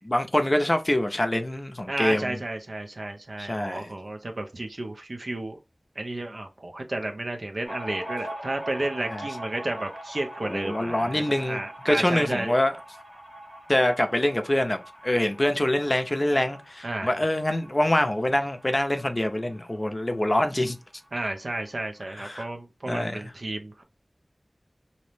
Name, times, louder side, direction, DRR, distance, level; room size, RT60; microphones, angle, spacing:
voice 1, 0.1-2.4 3.4-3.9 9.1-9.2 10.4-11.6 11.8-12.7 13.7-20.8 22.2-22.5 22.9-23.2, left 1 dB, 40° left, 0.5 m, -25 dB
voice 2, 1.9-5.6 6.0-12.5 16.8-17.1 21.1-23.8, right 2 dB, 75° right, 0.5 m, -32 dB
sound 1, 7.6-20.8 21.1-21.2 21.4-22.2, right 1 dB, 45° right, 1.0 m, -42 dB
2.6 x 2.0 x 3.1 m
wide cardioid pair, 45°, 0 cm